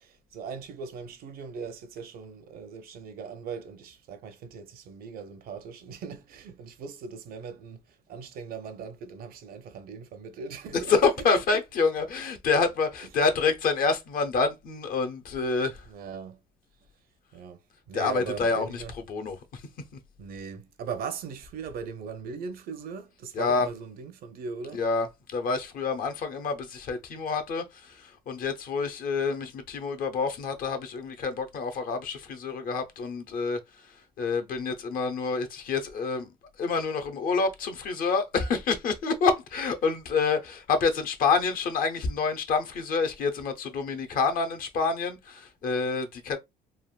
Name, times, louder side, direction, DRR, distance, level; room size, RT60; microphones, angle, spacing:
voice 1, 0.0-7.8 8.1-11.1 11.5-11.6 15.9-16.4 17.3-17.6 17.9-18.9 20.2-24.8, right 5 dB, 60° right, 0.6 m, -39 dB
voice 2, 10.9-15.8 17.9-18.8 19.1-19.4 23.3-23.7 24.7-25.1 25.3-27.6 28.3-33.6 34.2-36.3 36.6-46.4, left 4 dB, 55° left, 0.6 m, -27 dB
3.3 x 2.1 x 2.3 m
cardioid pair, 110°, 17 cm